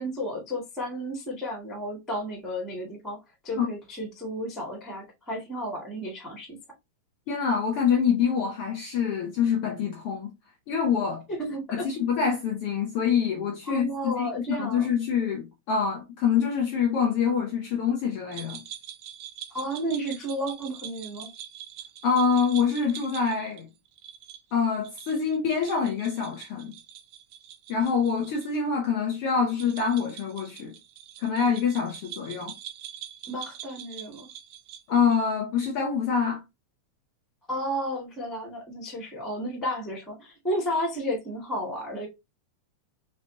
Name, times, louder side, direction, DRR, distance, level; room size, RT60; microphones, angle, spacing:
voice 1, 0.0-3.2 3.4-6.5 11.3-11.9 13.7-14.9 19.5-21.3 33.3-34.3 37.5-42.1, equal, ahead, 1.1 m, -32 dB
voice 2, 7.3-10.3 10.7-11.2 11.7-18.6 22.0-23.7 24.5-26.7 27.7-30.8 31.2-32.5 34.9-36.4, left 6 dB, 80° left, 1.3 m, -25 dB
sound 1, 18.3-28.5 28.7-28.8 29.5-35.3, right 10 dB, 85° right, 2.3 m, -44 dB
5.5 x 3.2 x 2.7 m
omnidirectional pair, 3.7 m